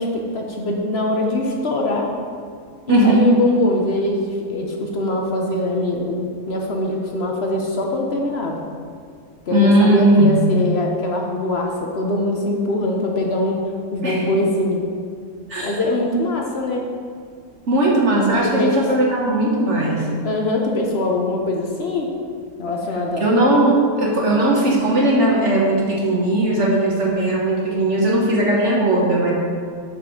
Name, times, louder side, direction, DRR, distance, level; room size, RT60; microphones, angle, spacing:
voice 1, 0.0-2.1 2.9-8.6 9.5-13.6 13.9-14.8 15.6-16.8 18.4-18.8 20.2-22.1 22.6-23.3, left 2 dB, 55° left, 0 dB, 0.7 m, -22 dB
voice 2, 2.9-3.2 9.5-10.5 14.0-14.2 15.5-15.7 17.7-20.1 23.2-29.3, right 1 dB, 50° right, -3 dB, 1.2 m, -18 dB
5.8 x 5.2 x 6.3 m, 2.2 s
omnidirectional pair, 1.8 m